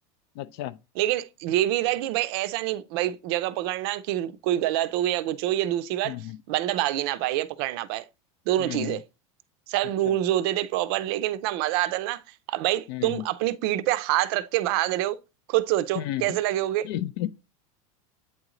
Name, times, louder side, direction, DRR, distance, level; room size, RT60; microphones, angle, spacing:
voice 1, 0.4-0.8 6.0-6.4 8.6-9.0 10.1-10.2 12.9-13.2 15.9-16.3 16.8-17.3, left 14 dB, 50° left, 0.5 m, -32 dB
voice 2, 1.0-6.2 6.5-8.0 8.5-9.0 9.7-12.2 12.5-15.2 15.5-16.9, right 14 dB, 45° right, 0.5 m, -26 dB
8.3 x 3.8 x 3.0 m
supercardioid pair, 175°, 17 cm